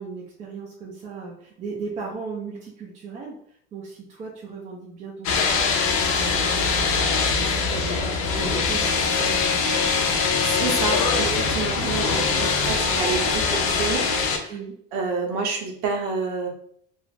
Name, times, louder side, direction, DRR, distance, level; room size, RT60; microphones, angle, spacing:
voice 1, 0.0-3.4 3.7-6.9 7.3-10.1 11.1-11.3 12.3-13.4 14.5-14.8, right 4 dB, 25° right, -3 dB, 0.3 m, -37 dB
sound 1, 5.2-14.4, left 5 dB, 45° left, 0.5 m, -22 dB
voice 2, 10.4-14.6 14.9-16.5, right 4 dB, 90° right, 2 dB, 0.7 m, -29 dB
2.4 x 2.1 x 3.1 m, 0.66 s
cardioid pair, 160°, 31 cm